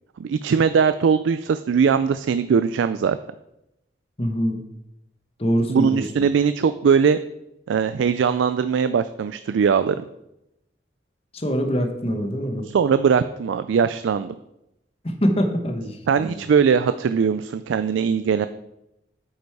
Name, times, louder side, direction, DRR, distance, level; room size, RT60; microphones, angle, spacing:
voice 1, 0.2-3.2 5.7-7.2 7.7-9.9 12.7-14.3 16.1-18.5, right 6 dB, 85° right, 12 dB, 0.3 m, -20 dB
voice 2, 4.2-4.6 5.4-6.0 11.3-12.7 15.0-16.4, equal, 30° left, 5 dB, 1.0 m, -24 dB
8.8 x 5.3 x 4.7 m, 0.87 s
head